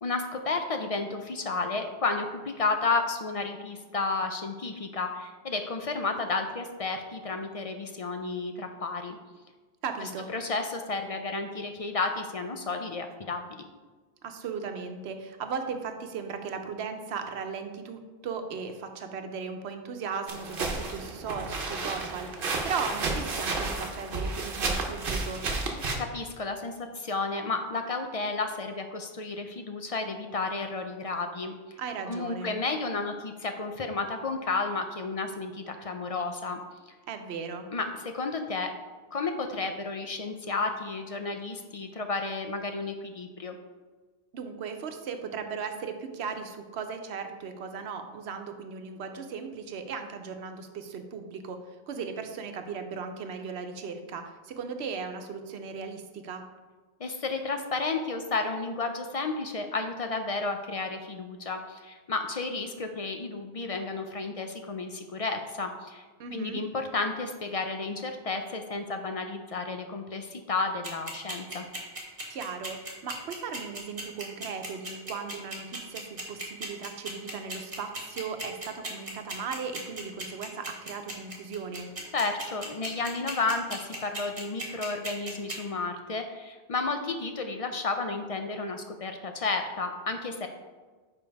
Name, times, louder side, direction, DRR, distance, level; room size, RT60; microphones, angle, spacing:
voice 1, 0.0-9.2 10.0-13.7 26.0-31.5 32.1-36.6 37.7-38.7 39.1-43.6 57.0-66.0 66.3-71.6 82.1-90.5, left 3 dB, 50° left, 5 dB, 0.4 m, -32 dB
voice 2, 9.8-10.3 14.2-25.4 31.8-32.5 37.1-37.7 44.3-51.6 51.9-56.4 66.2-66.6 72.3-81.9, right 5 dB, 90° right, 7 dB, 0.9 m, -37 dB
sound 1, 20.3-26.0, right 3 dB, 60° right, 1.0 m, -32 dB
sound 2, 70.8-85.5, right 2 dB, 40° right, 1.4 m, -36 dB
5.2 x 5.2 x 4.6 m, 1.3 s
omnidirectional pair, 1.1 m